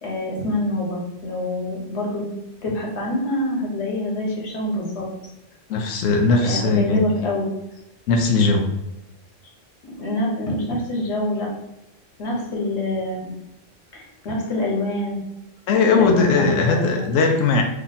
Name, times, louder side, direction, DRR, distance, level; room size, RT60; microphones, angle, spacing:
voice 1, 0.0-2.3 2.6-5.1 6.4-7.5 9.8-11.5 12.2-13.3 13.9-15.2 15.7-17.0, left 1 dB, 65° left, -3 dB, 1.3 m, -26 dB
voice 2, 5.7-7.0 8.1-8.6 15.7-17.6, left 4 dB, 85° left, 3 dB, 0.9 m, -19 dB
2.8 x 2.7 x 3.9 m, 0.88 s
omnidirectional pair, 1.3 m